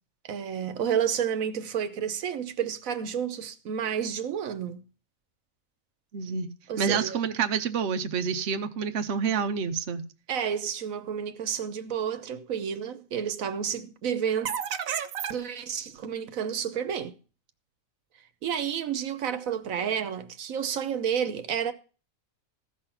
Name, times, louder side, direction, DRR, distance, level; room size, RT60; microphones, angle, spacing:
voice 1, 0.2-4.8 6.7-7.2 10.3-17.1 18.4-21.7, right 8 dB, 85° right, 1.3 m, -30 dB
voice 2, 6.1-6.5 6.8-10.0, right 6 dB, 60° right, 1.1 m, -28 dB
15.0 x 6.1 x 5.6 m
omnidirectional pair, 1.4 m